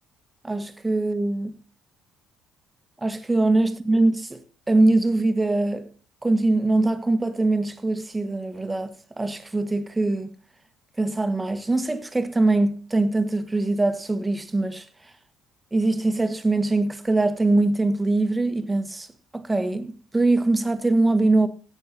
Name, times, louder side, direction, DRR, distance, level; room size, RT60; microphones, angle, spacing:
voice 1, 0.4-1.6 3.0-5.9 6.2-10.3 11.0-14.8 15.7-19.1 19.3-21.5, right 2 dB, 15° right, 1.5 m, -22 dB
16.5 x 6.8 x 4.2 m
cardioid pair, 105°, 0 cm